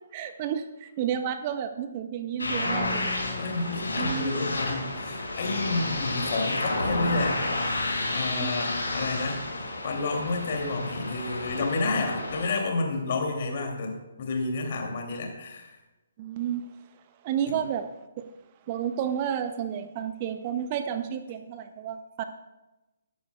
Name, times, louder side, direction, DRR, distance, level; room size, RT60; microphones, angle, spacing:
voice 1, 0.1-3.1 4.0-4.4 8.4-8.6 16.2-16.7 17.2-17.9 18.2-18.3 18.7-22.2, right 9 dB, 30° right, 9 dB, 0.7 m, -31 dB
sound 1, 2.4-12.5, left 2 dB, 70° left, 5.1 m, -31 dB
Acoustic guitar, 2.7-6.4, left 5 dB, 20° left, 1.3 m, -44 dB
voice 2, 3.4-7.4 8.1-9.4 9.8-15.7 17.5-17.6, left 3 dB, 40° left, 1 dB, 2.8 m, -30 dB
21.5 x 10.5 x 2.4 m, 1.0 s
figure-of-eight pair, 135°, 0 cm